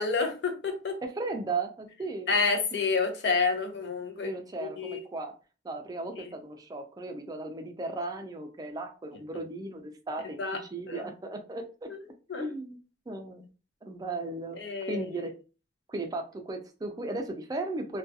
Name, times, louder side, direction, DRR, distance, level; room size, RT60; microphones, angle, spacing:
voice 1, 0.0-1.0 2.3-4.3 4.6-5.0 6.2-6.3 10.4-10.6 10.9-11.0 11.9-12.0 12.3-12.5 14.6-15.1, left 4 dB, 75° left, 0.6 m, -29 dB
voice 2, 1.0-2.4 4.2-5.3 5.6-11.9 12.4-12.8 13.1-13.4 13.8-14.6 14.9-15.3 15.9-18.0, right 2 dB, 20° right, 0.3 m, -36 dB
2.4 x 2.2 x 2.6 m
head